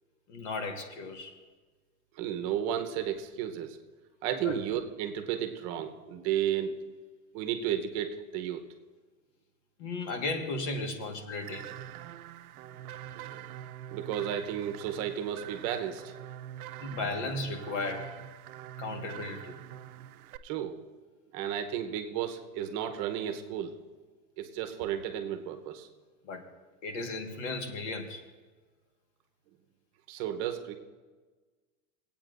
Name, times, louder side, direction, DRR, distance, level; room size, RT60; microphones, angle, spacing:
voice 1, 0.3-1.3 4.4-4.6 9.8-11.7 16.8-18.1 18.8-19.6 26.2-26.4 26.8-28.2, left 3 dB, 55° left, 5 dB, 1.6 m, -35 dB
voice 2, 2.2-3.8 4.2-6.9 7.3-8.6 13.1-13.5 13.9-16.1 20.4-20.8 21.3-23.8 24.4-25.9 30.1-30.7, right 10 dB, 35° right, 6 dB, 0.9 m, -33 dB
sound 1, 11.4-20.4, right 11 dB, 80° right, 0.7 m, -45 dB
23.0 x 8.7 x 2.6 m, 1.4 s
supercardioid pair, 155°, 43 cm